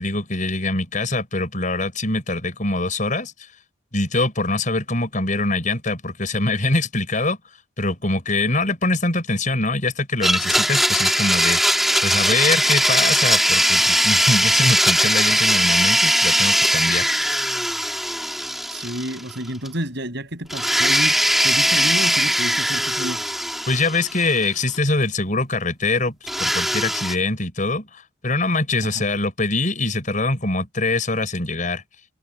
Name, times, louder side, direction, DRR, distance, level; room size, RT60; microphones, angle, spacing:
voice 1, 0.0-3.5 3.9-7.4 7.8-17.1 23.7-31.8, left 2 dB, 40° left, 6.6 m, -23 dB
Domestic sounds home sounds, 10.2-19.4 19.7-19.8 20.5-24.4 26.3-27.2, equal, ahead, 1.9 m, -20 dB
voice 2, 18.7-23.3 28.8-29.0, right 1 dB, 60° right, 7.8 m, -30 dB
head